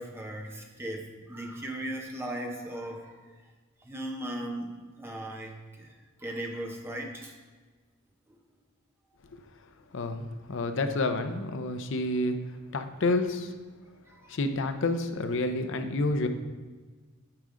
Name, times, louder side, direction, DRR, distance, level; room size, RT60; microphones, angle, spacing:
voice 1, 0.0-3.2 3.8-5.9 6.2-7.3 14.2-14.4, right 1 dB, 10° right, 1 dB, 0.8 m, -37 dB
voice 2, 9.9-13.5 14.3-16.3, left 2 dB, 60° left, 7 dB, 0.6 m, -29 dB
8.9 x 5.0 x 3.8 m, 1.4 s
head